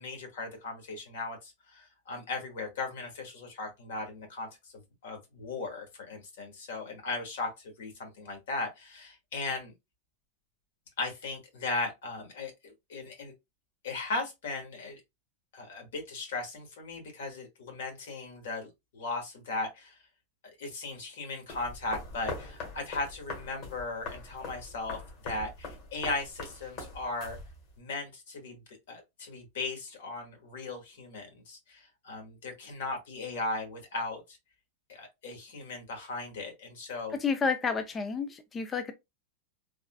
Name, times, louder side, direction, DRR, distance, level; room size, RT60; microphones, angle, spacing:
voice 1, 0.0-4.7 5.0-9.7 11.0-13.3 13.8-15.0 15.5-20.0 20.6-27.4 27.8-28.6 28.9-34.2 34.9-37.1, left 3 dB, 75° left, 1.4 m, -37 dB
sound 1, 21.5-27.8, left 3 dB, 45° left, 1.5 m, -42 dB
voice 2, 37.1-38.9, left 5 dB, 20° left, 0.3 m, -30 dB
3.5 x 2.3 x 2.2 m
hypercardioid pair, 125°, 0 cm